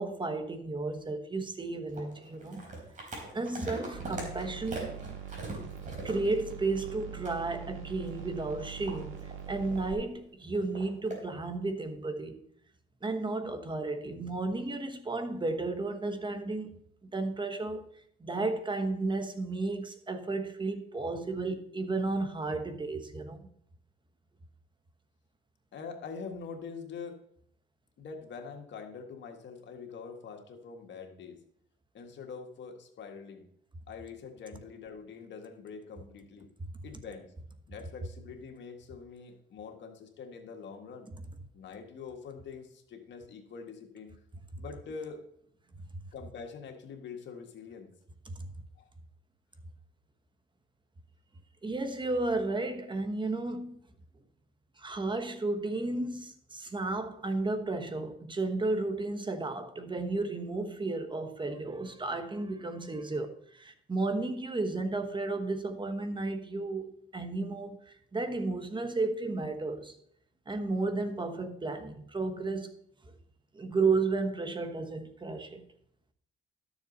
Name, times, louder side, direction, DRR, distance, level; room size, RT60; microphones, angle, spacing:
voice 1, 0.0-2.6 3.3-5.1 6.0-9.2 9.5-12.4 13.0-17.9 18.2-23.5 48.3-48.5 51.6-53.8 54.8-70.0 70.5-72.7 73.5-75.6, right 3 dB, 25° right, 1.1 m, -33 dB
sound 1, 1.9-7.0 7.2-7.4 8.0-10.0 10.5-11.2, right 2 dB, 40° right, 4.1 m, -42 dB
sound 2, 3.9-9.9, right 8 dB, 85° right, 1.5 m, -43 dB
voice 2, 25.7-27.2 28.0-31.4 31.9-33.5 33.9-36.5 36.8-37.3 37.7-41.1 41.5-44.1 44.6-45.2 46.1-47.9 48.8-48.9, left 5 dB, 65° left, 1.7 m, -44 dB
12.5 x 7.0 x 4.0 m
cardioid pair, 90°, 20 cm